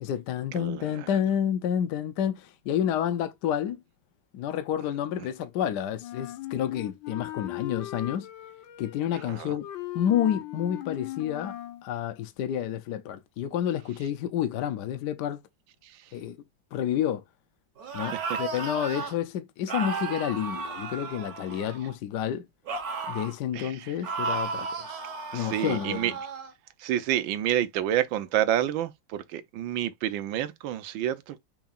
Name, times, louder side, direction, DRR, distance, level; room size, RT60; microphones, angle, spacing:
voice 1, 0.0-3.8 4.3-8.3 8.8-9.7 9.9-11.6 11.8-15.4 16.1-16.4 16.7-17.2 17.9-22.5 23.1-24.9 25.3-26.0, left 10 dB, 70° left, 1.1 m, -29 dB
voice 2, 0.5-1.1 5.2-5.3 9.1-9.5 15.8-16.1 18.0-18.4 23.5-23.9 25.3-26.1 26.8-31.4, right 11 dB, 85° right, 1.5 m, -29 dB
Wind instrument woodwind instrument, 6.0-11.8, left 14 dB, 90° left, 1.5 m, -38 dB
sound 1, 17.8-19.1 19.7-21.9 22.7-23.4 24.0-26.5, right 4 dB, 55° right, 1.6 m, -34 dB
6.0 x 3.7 x 2.4 m
omnidirectional pair, 2.0 m